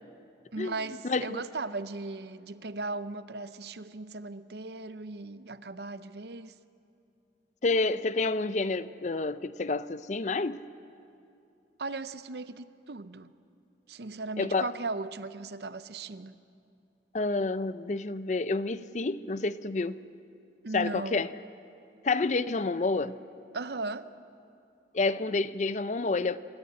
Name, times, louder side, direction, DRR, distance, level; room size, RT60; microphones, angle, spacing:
voice 1, 0.5-6.6 11.8-13.3 13.9-16.4 20.6-21.2 23.5-24.1, right 3 dB, 60° right, 0.7 m, -37 dB
voice 2, 1.0-1.4 7.6-10.7 14.4-14.7 17.1-20.0 20.7-21.3 22.0-23.2 24.9-26.4, left 3 dB, 40° left, 0.5 m, -29 dB
27.0 x 14.5 x 8.7 m
head